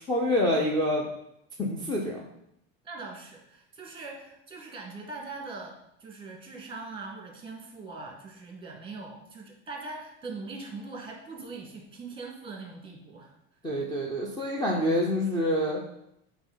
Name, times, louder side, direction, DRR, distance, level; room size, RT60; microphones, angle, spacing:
voice 1, 0.1-1.1 1.6-2.2 13.6-15.8, left 1 dB, 15° left, -3 dB, 0.7 m, -26 dB
voice 2, 2.8-13.3, right 3 dB, 15° right, 0 dB, 1.6 m, -41 dB
7.9 x 3.0 x 4.0 m, 0.78 s
cardioid pair, 145°, 31 cm